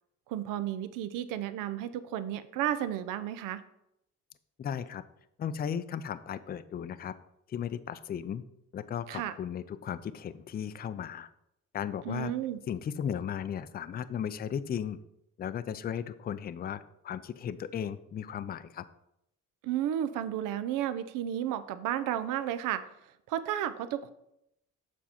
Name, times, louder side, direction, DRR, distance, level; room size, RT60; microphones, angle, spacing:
voice 1, 0.3-3.6 9.1-9.3 12.1-12.6 19.6-22.8 23.3-24.1, right 11 dB, 80° right, 13 dB, 0.6 m, -32 dB
voice 2, 4.6-5.0 5.4-7.1 7.5-8.4 8.7-11.3 11.7-12.3 12.7-15.0 15.4-18.8, left 8 dB, 30° left, 14 dB, 0.4 m, -36 dB
7.3 x 4.4 x 4.3 m, 0.80 s
cardioid pair, 90°, 32 cm